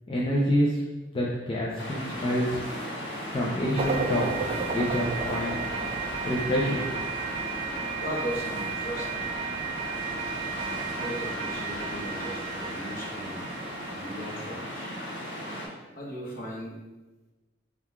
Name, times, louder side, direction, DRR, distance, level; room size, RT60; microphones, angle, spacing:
voice 1, 0.1-0.8 1.1-2.6 3.3-5.6 6.2-6.8, equal, 30° left, -4 dB, 0.4 m, -27 dB
sound 1, 1.8-15.7, equal, 85° left, 1.2 m, -36 dB
sound 2, 3.7-14.9, right 5 dB, 35° right, 0.4 m, -34 dB
voice 2, 8.0-9.3 10.4-14.9 15.9-16.7, equal, 50° left, -4 dB, 1.0 m, -38 dB
3.7 x 2.3 x 4.3 m, 1.2 s
head